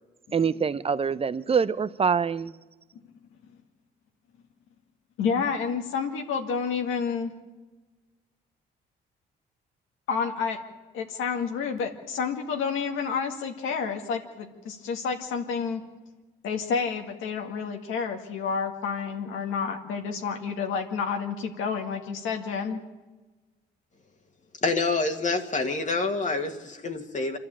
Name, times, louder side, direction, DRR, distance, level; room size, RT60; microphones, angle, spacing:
voice 1, 0.3-2.5, right 6 dB, 30° right, 0.7 m, -25 dB
voice 2, 5.2-7.3 10.1-10.6 10.9-15.8 16.4-22.8, left 6 dB, 85° left, 1.9 m, -29 dB
voice 3, 24.6-27.4, left 3 dB, 40° left, 1.8 m, -27 dB
26.0 x 11.5 x 8.7 m
cardioid pair, 90°, 20 cm